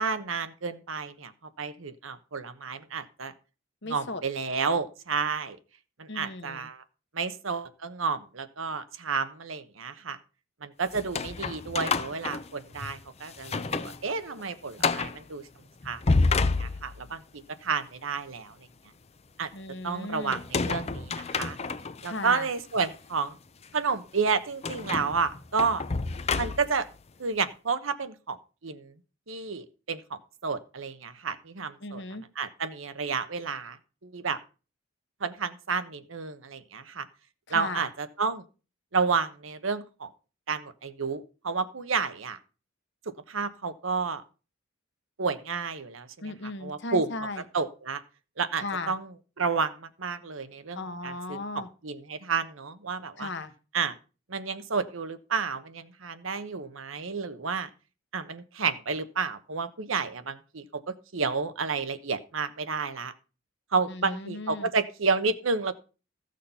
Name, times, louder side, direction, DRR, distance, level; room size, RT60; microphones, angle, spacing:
voice 1, 0.0-1.3 1.6-3.3 3.8-5.6 6.0-6.8 7.1-10.2 10.6-15.4 15.8-16.0 16.3-17.2 17.6-18.5 19.4-19.5 19.8-21.6 22.0-23.4 23.7-25.8 26.4-26.9 27.2-28.4 28.6-28.9 29.3-32.0 32.4-33.8 34.0-34.4 35.2-37.1 37.5-38.4 38.9-40.1 40.5-42.4 43.3-44.2 45.2-46.1 46.6-47.1 47.5-48.0 48.4-49.1 49.4-50.8 51.0-53.3 53.7-54.0 54.3-57.7 58.1-63.1 63.7-65.7, right 5 dB, 75° right, 11 dB, 1.0 m, -31 dB
voice 2, 3.8-4.2 6.1-6.7 19.5-20.4 22.0-22.5 31.8-32.2 37.5-37.9 46.2-47.4 48.6-48.9 50.7-51.7 53.2-53.5 63.9-64.7, left 3 dB, 60° left, 9 dB, 1.3 m, -36 dB
sound 1, 10.9-13.0 13.4-14.0 14.3-14.4 14.8-15.2 15.8-17.2 20.3-22.1 22.7-22.9 24.6-26.9, left 4 dB, 30° left, 0.6 m, -29 dB
14.5 x 6.6 x 5.5 m, 0.35 s
head